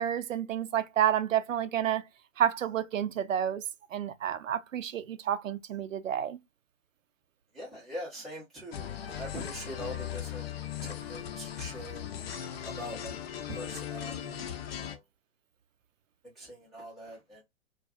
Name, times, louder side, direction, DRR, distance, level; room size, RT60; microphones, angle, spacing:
voice 1, 0.0-2.0 2.4-3.6 3.9-6.4, right 10 dB, 75° right, 0.5 m, -30 dB
voice 2, 7.5-10.5 10.8-12.1 12.6-13.2 13.5-15.0 16.4-17.4, equal, ahead, 0.4 m, -43 dB
sound 1, 8.7-15.0, left 10 dB, 50° left, 0.5 m, -38 dB
2.5 x 2.3 x 2.4 m
figure-of-eight pair, 125°, 39 cm